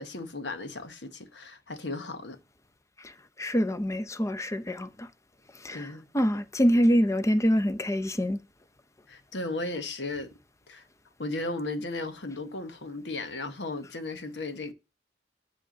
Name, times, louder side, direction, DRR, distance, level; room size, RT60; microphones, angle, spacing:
voice 1, 0.0-2.4 5.7-6.1 9.1-10.3 10.7-10.8 11.2-14.7, left 2 dB, 90° left, 1.2 m, -35 dB
voice 2, 3.4-5.1 5.6-5.9 6.1-8.4, equal, 15° left, 0.6 m, -25 dB
10.5 x 3.6 x 6.5 m
head